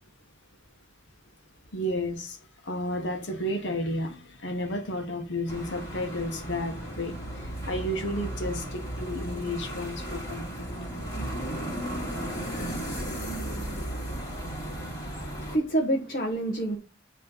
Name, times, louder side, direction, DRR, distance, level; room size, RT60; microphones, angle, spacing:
voice 1, 1.7-2.4 2.7-10.7, left 1 dB, 70° left, 1.3 m, -32 dB
sound 1, 5.5-15.6, right 1 dB, 20° left, 2.4 m, -35 dB
voice 2, 15.1-16.8, right 1 dB, 50° left, 1.1 m, -28 dB
8.2 x 3.2 x 5.5 m
head